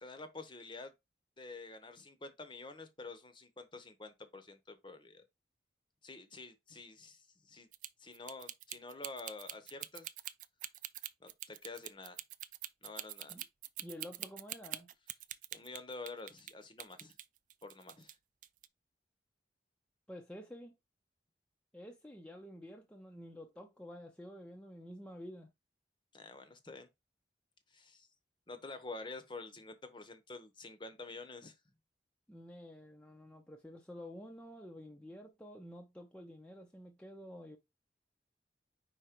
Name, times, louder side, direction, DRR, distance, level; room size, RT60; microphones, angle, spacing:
voice 1, 0.0-0.9 1.4-5.2 6.0-7.7 8.0-10.1 11.2-12.2 12.8-13.3 15.5-17.1 17.6-18.1 26.1-26.9 27.7-28.1 28.5-31.6, left 3 dB, 25° left, 1.0 m, -48 dB
sound 1, 7.7-16.5 16.8-18.1 18.4-18.7, right 13 dB, 45° right, 0.4 m, -44 dB
voice 2, 13.8-14.9 20.1-20.8 21.7-25.5 32.3-37.6, equal, 5° left, 0.7 m, -50 dB
5.1 x 4.2 x 4.5 m
head